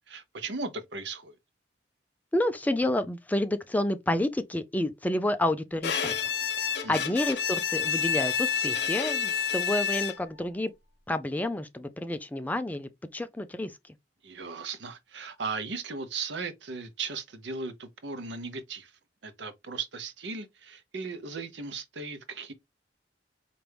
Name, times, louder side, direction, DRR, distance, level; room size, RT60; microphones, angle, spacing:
voice 1, 0.1-1.3 6.8-7.2 14.2-18.9 19.2-22.5, right 4 dB, 85° right, 0.8 m, -37 dB
voice 2, 2.3-6.2 6.6-10.7 11.1-13.7, left 1 dB, 10° left, 0.4 m, -29 dB
Bowed string instrument, 5.8-10.4, left 7 dB, 65° left, 0.8 m, -29 dB
4.4 x 2.6 x 3.4 m
head